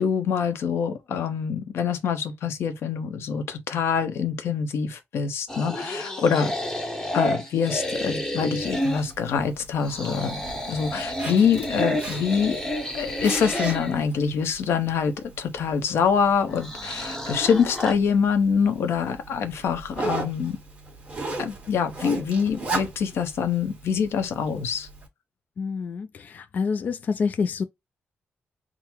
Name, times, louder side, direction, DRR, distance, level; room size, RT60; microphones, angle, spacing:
voice 1, 0.0-6.5 7.1-10.3 10.7-12.6 12.9-20.6 21.4-24.9, left 6 dB, 85° left, 0.8 m, -25 dB
sound 1, 5.5-9.1 9.8-14.0 16.5-17.9, equal, 10° left, 0.8 m, -30 dB
Zipper (clothing), 8.6-25.1, right 3 dB, 30° right, 1.6 m, -38 dB
voice 2, 25.6-27.6, left 5 dB, 45° left, 0.3 m, -27 dB
3.8 x 2.0 x 4.4 m
wide cardioid pair, 170°, 4 cm